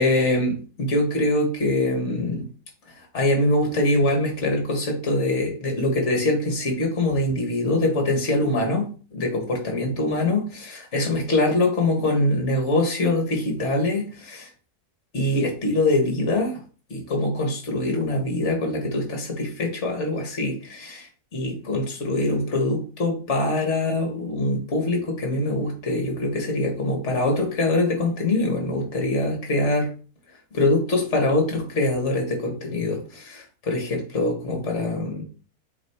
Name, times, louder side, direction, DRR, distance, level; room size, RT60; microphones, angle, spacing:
voice 1, 0.0-2.5 3.1-8.9 9.1-14.5 15.1-16.6 16.9-29.9 30.5-35.2, left 2 dB, 50° left, 2 dB, 1.9 m, -23 dB
7.4 x 3.2 x 4.5 m, 0.38 s
omnidirectional pair, 1.6 m